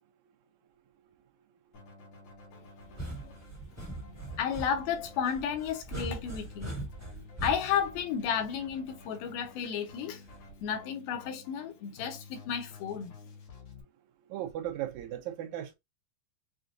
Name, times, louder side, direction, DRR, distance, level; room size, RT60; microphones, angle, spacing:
Keyboard (musical), 1.7-13.8, left 4 dB, 60° left, 2.7 m, -52 dB
sound 1, 2.8-8.9 10.3-10.7, right 2 dB, 20° right, 0.4 m, -41 dB
voice 1, 4.4-6.7 7.4-10.2 10.6-13.1, left 8 dB, 85° left, 2.8 m, -32 dB
voice 2, 14.3-15.7, right 12 dB, 80° right, 1.7 m, -36 dB
6.6 x 2.5 x 2.6 m
omnidirectional pair, 4.2 m